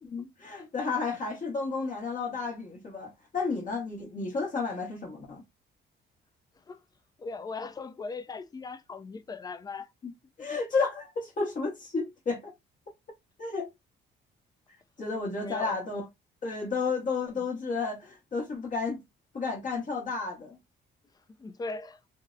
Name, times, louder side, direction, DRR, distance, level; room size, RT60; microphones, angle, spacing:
voice 1, 0.1-5.4 10.4-12.5 13.4-13.7 15.0-16.0 16.4-19.0 19.3-20.6, left 4 dB, 40° left, 0.9 m, -32 dB
voice 2, 7.2-9.9 10.4-10.5 15.3-15.8 17.3-17.4 21.4-22.0, left 4 dB, 20° left, 0.3 m, -39 dB
2.6 x 2.0 x 2.3 m
cardioid pair, 90°, 20 cm